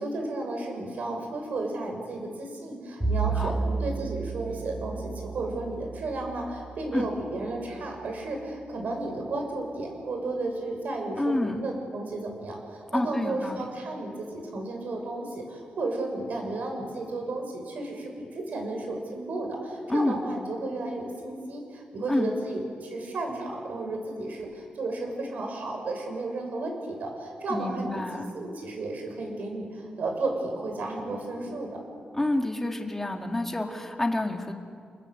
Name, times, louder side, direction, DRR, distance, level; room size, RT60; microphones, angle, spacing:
voice 1, 0.0-31.8, right 2 dB, 60° right, 2 dB, 6.7 m, -33 dB
Bowed string instrument, 3.0-7.6, right 4 dB, 10° right, 5.1 m, -32 dB
voice 2, 11.2-11.7 12.9-13.6 19.9-20.2 22.1-22.3 27.5-28.3 32.1-34.5, left 1 dB, 10° left, 3 dB, 2.2 m, -28 dB
29.0 x 19.5 x 8.1 m, 2.2 s
wide cardioid pair, 145°, 3 cm